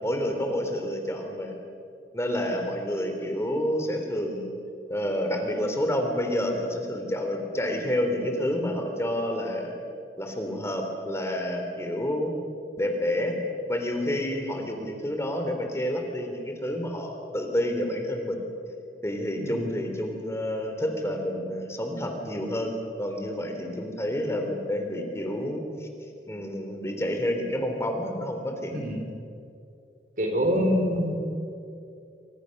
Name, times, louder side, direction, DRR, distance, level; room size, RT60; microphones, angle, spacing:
voice 1, 0.0-1.5 2.1-4.5 4.9-9.7 10.2-12.3 12.8-13.4 13.7-18.4 19.0-25.9 26.3-28.7, left 1 dB, 15° left, 4 dB, 3.1 m, -29 dB
voice 2, 28.7-29.1 30.2-31.1, equal, 50° right, 4 dB, 4.4 m, -26 dB
30.0 x 25.0 x 6.5 m, 2.5 s
head